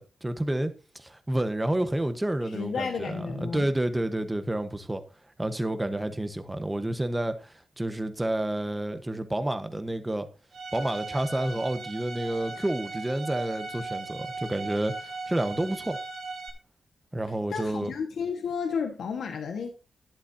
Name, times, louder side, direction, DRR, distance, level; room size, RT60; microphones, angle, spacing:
voice 1, 0.0-5.0 5.4-10.3 10.7-16.0 17.1-17.9, right 1 dB, 15° right, 1.3 m, -30 dB
voice 2, 2.5-3.7 17.5-19.7, left 6 dB, 85° left, 1.6 m, -32 dB
Bowed string instrument, 10.5-16.5, right 3 dB, 75° right, 2.7 m, -37 dB
12.5 x 11.0 x 2.8 m
wide cardioid pair, 120°, 0 cm